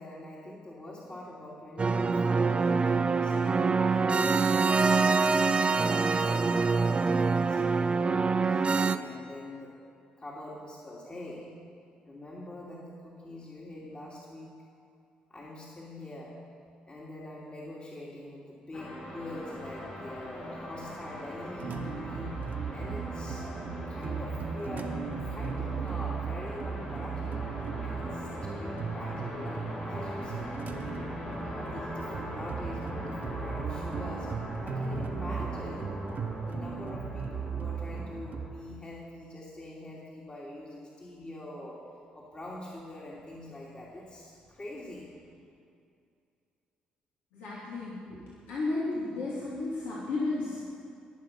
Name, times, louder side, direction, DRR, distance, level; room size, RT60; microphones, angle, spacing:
voice 1, 0.0-4.4 4.9-7.2 7.5-9.8 10.2-11.6 12.0-14.6 15.3-16.4 16.8-23.5 23.9-27.5 27.8-30.6 31.2-34.3 34.6-36.0 36.4-45.1, left 1 dB, 30° left, -5 dB, 2.7 m, -44 dB
sound 1, 1.8-9.0, right 4 dB, 30° right, 0.6 m, -25 dB
sound 2, 18.7-38.7, left 1 dB, 55° left, 3.0 m, -41 dB
sound 3, 21.6-38.5, right 5 dB, 55° right, 1.2 m, -36 dB
voice 2, 47.3-48.2 48.5-50.7, left 2 dB, 75° left, -8 dB, 2.6 m, -33 dB
20.5 x 7.5 x 5.5 m, 2.5 s
hypercardioid pair, 55°, 3 cm